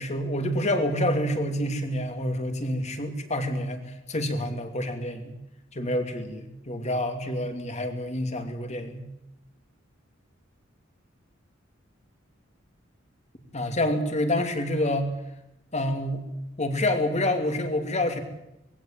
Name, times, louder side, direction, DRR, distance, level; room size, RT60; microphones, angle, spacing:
voice 1, 0.0-5.3 5.7-9.1 13.5-15.1 15.7-16.3 16.6-18.2, left 1 dB, 35° left, 6 dB, 2.8 m, -27 dB
21.0 x 16.0 x 9.2 m, 0.88 s
head